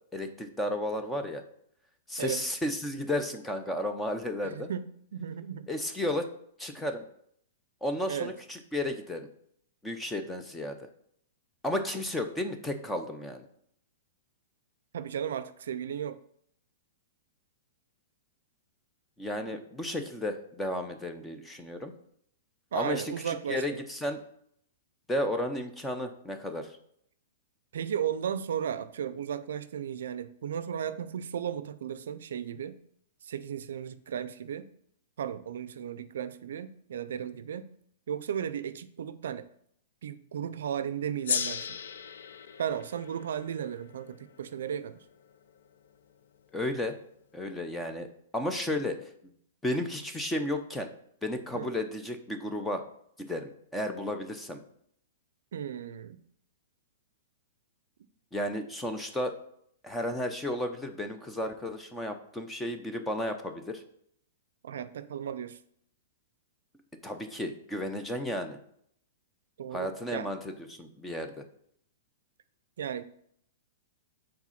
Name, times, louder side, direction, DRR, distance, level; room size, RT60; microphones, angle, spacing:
voice 1, 0.1-1.4 2.1-4.7 5.7-6.3 6.6-7.0 7.8-9.3 9.8-10.8 11.6-13.4 19.2-21.9 22.7-24.2 25.1-26.7 46.5-47.0 47.3-48.1 48.3-49.0 49.6-50.9 51.2-52.8 53.2-54.6 58.3-59.4 59.8-63.8 67.0-68.6 69.7-71.4, left 1 dB, 5° left, 6 dB, 0.6 m, -33 dB
voice 2, 4.4-4.8 5.1-5.7 8.1-8.3 14.9-16.2 22.7-23.8 27.7-32.8 33.2-34.7 35.2-37.7 38.1-39.5 40.0-41.8 42.6-45.0 51.5-51.7 55.5-56.2 64.6-65.6 69.6-70.3 72.8-73.0, right 8 dB, 75° right, 13 dB, 0.4 m, -35 dB
Gong, 41.2-46.0, left 7 dB, 80° left, 0.4 m, -37 dB
4.8 x 3.8 x 5.7 m, 0.68 s
hypercardioid pair, 140°, 0 cm